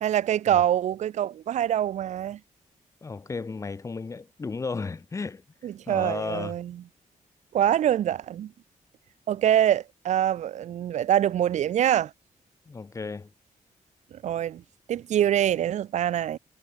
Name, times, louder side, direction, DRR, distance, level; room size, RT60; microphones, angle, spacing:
voice 1, 0.0-2.4 5.6-6.8 7.5-8.5 9.3-12.1 14.1-14.6 14.9-16.4, right 11 dB, 60° right, 0.4 m, -25 dB
voice 2, 3.0-5.4 5.9-6.5 12.7-13.3, left 4 dB, 25° left, 0.6 m, -34 dB
wide cardioid pair, 130°, 13 cm